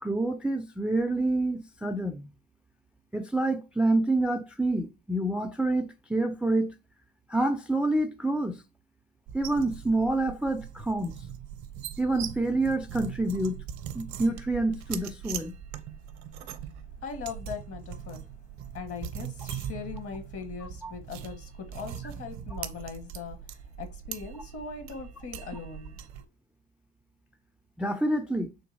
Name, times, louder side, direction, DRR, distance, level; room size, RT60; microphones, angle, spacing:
voice 1, 0.0-2.3 3.1-6.7 7.3-8.6 9.3-11.2 12.0-13.6 13.9-15.5 20.8-20.9 22.5-22.6 27.8-28.5, right 2 dB, 5° right, 0.3 m, -27 dB
sound 1, 9.3-26.3, right 9 dB, 65° right, 0.6 m, -41 dB
voice 2, 17.0-18.2 18.7-23.4 23.8-26.2, left 5 dB, 50° left, 1.2 m, -40 dB
3.8 x 2.7 x 2.5 m
hypercardioid pair, 60°, 30 cm